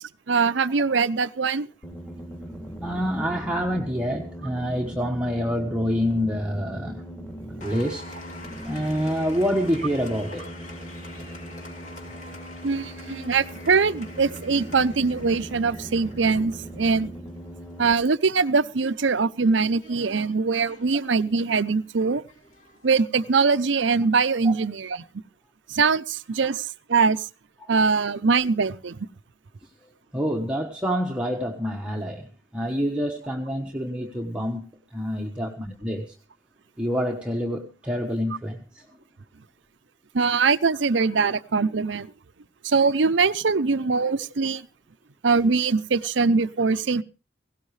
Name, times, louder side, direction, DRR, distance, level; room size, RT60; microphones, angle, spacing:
voice 1, 0.3-1.7 12.6-17.1 17.8-22.2 22.8-25.0 25.7-27.3 27.7-29.1 40.1-42.1 42.6-44.7 45.2-47.0, right 4 dB, 75° right, 0.7 m, -22 dB
sound 1, 1.8-17.9, right 1 dB, 10° left, 2.7 m, -39 dB
voice 2, 2.8-7.1 7.6-8.1 8.6-10.5 24.4-24.5 27.6-27.7 30.1-32.3 32.5-34.6 34.9-36.1 36.8-38.8, equal, 5° right, 1.2 m, -27 dB
Applause, 7.6-22.9, left 2 dB, 40° left, 3.2 m, -46 dB
17.5 x 17.0 x 3.3 m
head